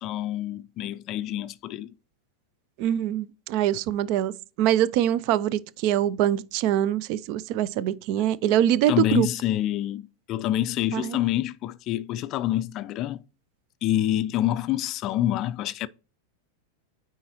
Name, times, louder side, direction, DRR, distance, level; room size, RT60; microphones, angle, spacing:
voice 1, 0.0-1.9 8.9-13.2 13.8-15.9, left 13 dB, 40° left, 0.3 m, -27 dB
voice 2, 2.8-4.3 4.6-9.3 10.9-11.2, right 11 dB, 50° right, 0.4 m, -24 dB
9.3 x 3.7 x 2.9 m
figure-of-eight pair, 90°, 0 cm